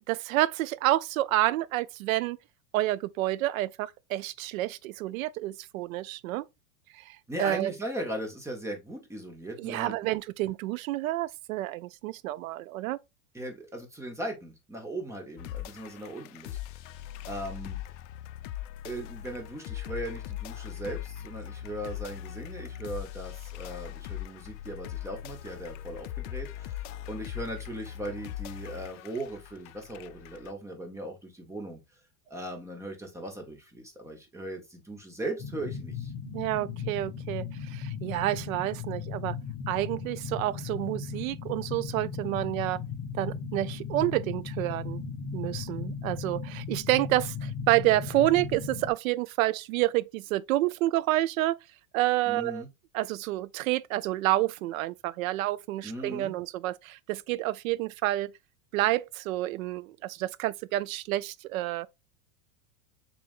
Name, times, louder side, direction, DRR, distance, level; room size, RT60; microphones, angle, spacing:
voice 1, 0.0-2.4 2.7-6.4 6.9-7.7 9.6-13.0 36.3-39.4 39.7-42.8 43.1-45.0 45.3-51.6 51.9-52.6 52.9-58.3 58.7-61.9, right 16 dB, 75° right, 0.5 m, -29 dB
voice 2, 7.3-9.9 13.3-16.6 17.3-17.8 18.8-31.8 32.3-36.1 52.3-52.7 55.8-56.4, right 1 dB, 5° right, 0.9 m, -38 dB
sound 1, 15.4-30.5, left 12 dB, 60° left, 0.5 m, -40 dB
sound 2, 35.4-48.9, left 6 dB, 35° left, 0.8 m, -37 dB
6.9 x 2.6 x 2.4 m
supercardioid pair, 135°, 41 cm